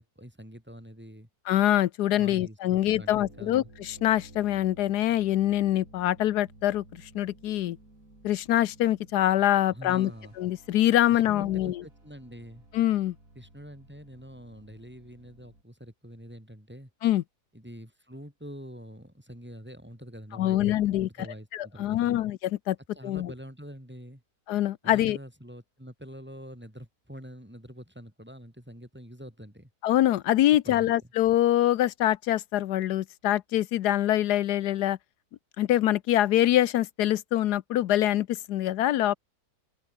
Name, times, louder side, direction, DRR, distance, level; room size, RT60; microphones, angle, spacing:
voice 1, 0.0-1.3 2.1-3.7 9.7-10.3 11.1-12.6 13.3-16.9 17.5-22.2 22.9-24.2 24.8-29.7 30.6-30.9, equal, 5° right, 4.7 m, -45 dB
voice 2, 1.5-6.8 7.1-7.8 8.2-10.1 10.4-11.7 12.7-13.1 17.0-17.2 20.4-21.1 21.5-22.8 23.0-23.3 24.5-25.2 29.8-35.0 35.6-39.2, left 13 dB, 85° left, 1.3 m, -24 dB
sound 1, 2.8-15.6, right 2 dB, 55° right, 7.7 m, -54 dB
open air
omnidirectional pair, 1.7 m